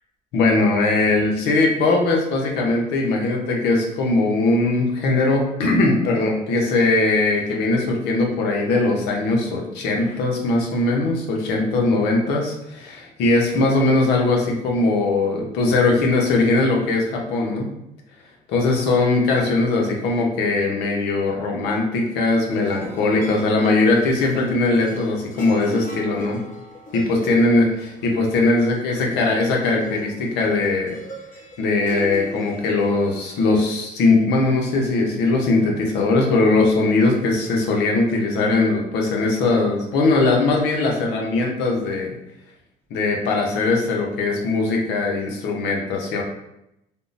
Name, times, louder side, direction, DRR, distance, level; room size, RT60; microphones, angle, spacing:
voice 1, 0.3-17.7 18.5-26.4 26.9-31.0 31.6-42.1 42.9-46.2, left 3 dB, 85° left, 0 dB, 0.7 m, -20 dB
sound 1, 22.5-33.5, left 1 dB, 55° left, 1.0 m, -39 dB
3.5 x 2.0 x 2.5 m, 0.84 s
cardioid pair, 110°, 17 cm